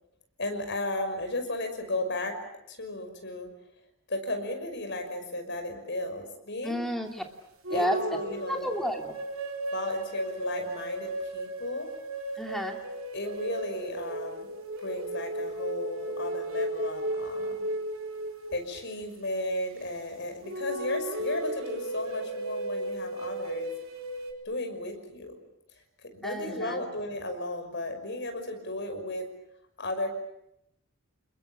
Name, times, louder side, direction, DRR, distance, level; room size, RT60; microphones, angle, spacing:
voice 1, 0.4-2.3 2.7-3.5 4.1-6.9 7.7-8.7 9.7-11.9 13.1-14.5 14.8-17.7 18.5-23.7 24.4-25.3 26.1-29.2 29.8-30.2, left 1 dB, 55° left, 5 dB, 5.8 m, -34 dB
voice 2, 6.6-7.2 7.7-8.0 8.5-9.2 12.4-12.8 26.2-26.8, equal, ahead, 3 dB, 2.7 m, -31 dB
sound 1, 7.6-19.0 20.4-24.3, right 1 dB, 65° right, 4.2 m, -35 dB
28.5 x 21.5 x 8.8 m, 0.81 s
head